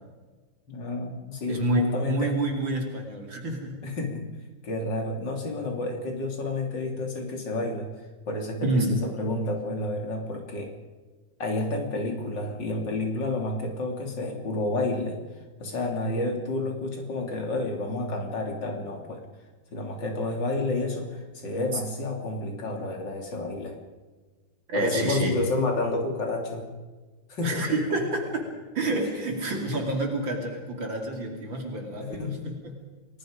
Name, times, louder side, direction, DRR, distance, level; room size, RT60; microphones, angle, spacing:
voice 1, 0.7-2.4 3.8-4.3 4.6-7.9 8.3-10.7 11.4-15.2 15.6-19.2 19.7-23.8 24.7-26.7 27.3-27.7 32.0-32.4, left 2 dB, 65° left, 2 dB, 3.7 m, -30 dB
voice 2, 1.5-3.8 8.6-9.0 21.7-21.8 24.7-25.4 27.4-32.7, right 2 dB, 75° right, 1 dB, 3.6 m, -28 dB
30.0 x 19.0 x 5.2 m, 1.4 s
omnidirectional pair, 2.1 m